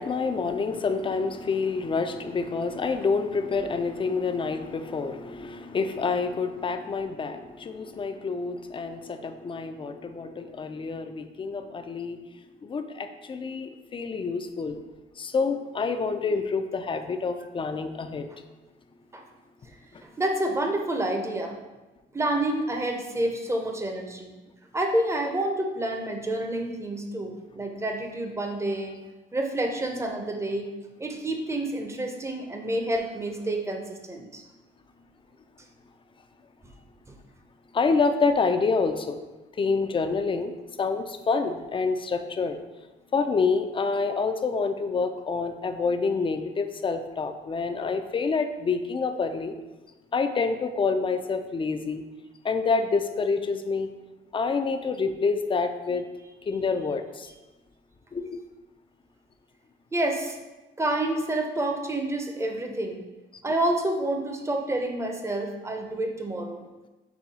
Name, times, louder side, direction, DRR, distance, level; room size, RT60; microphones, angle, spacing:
voice 1, 0.0-12.2 12.6-14.8 15.2-18.3 37.7-39.2 39.6-42.6 43.1-49.5 50.1-52.0 52.4-53.9 54.3-56.0 56.5-57.3 58.1-58.4, left 4 dB, 25° left, 8 dB, 0.4 m, -27 dB
voice 2, 20.0-21.6 22.1-24.3 24.7-29.0 29.3-30.7 31.0-34.4 59.9-60.4 60.8-63.0 63.4-66.6, right 1 dB, 15° right, 3 dB, 0.6 m, -28 dB
5.4 x 2.3 x 4.1 m, 1.1 s
cardioid pair, 90°, 20 cm